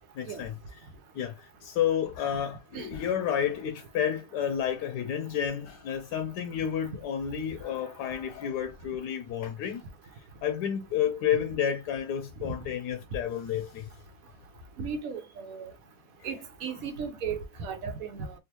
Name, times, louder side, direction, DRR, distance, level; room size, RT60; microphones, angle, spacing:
voice 1, 0.1-0.6 1.1-9.8 10.4-13.9, left 9 dB, 85° left, 1.2 m, -30 dB
voice 2, 14.8-15.7 16.2-18.3, right 6 dB, 65° right, 1.2 m, -36 dB
3.4 x 2.7 x 2.8 m
omnidirectional pair, 1.8 m